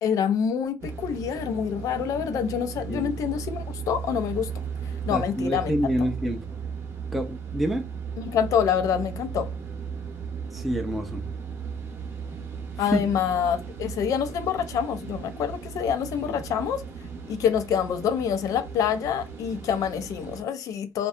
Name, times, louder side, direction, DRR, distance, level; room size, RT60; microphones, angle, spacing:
voice 1, 0.0-4.5 5.1-5.7 8.2-9.5 12.8-16.8 17.3-21.1, left 8 dB, 70° left, 0.4 m, -26 dB
sound 1, 0.8-20.4, right 6 dB, 40° right, 0.7 m, -36 dB
voice 2, 5.1-6.4 7.1-7.8 10.5-11.3 12.8-13.0, equal, ahead, 0.3 m, -27 dB
2.6 x 2.1 x 2.4 m
cardioid pair, 165°, 6 cm